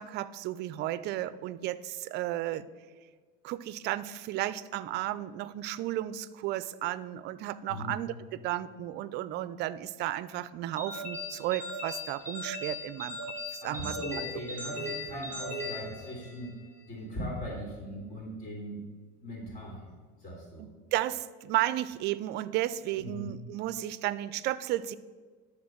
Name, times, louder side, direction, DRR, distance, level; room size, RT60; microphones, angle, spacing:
voice 1, 0.0-2.7 3.4-8.1 8.4-13.2 13.5-14.2 20.6-25.0, right 14 dB, 55° right, 17 dB, 0.5 m, -33 dB
voice 2, 7.7-8.0 13.6-16.6 16.9-18.8 19.2-19.9 20.2-20.7 23.0-23.3, equal, 35° left, -3 dB, 3.3 m, -39 dB
sound 1, 10.8-16.5, left 1 dB, 10° left, 2.4 m, -38 dB
11.5 x 3.8 x 7.2 m, 1.5 s
supercardioid pair, 115°, 21 cm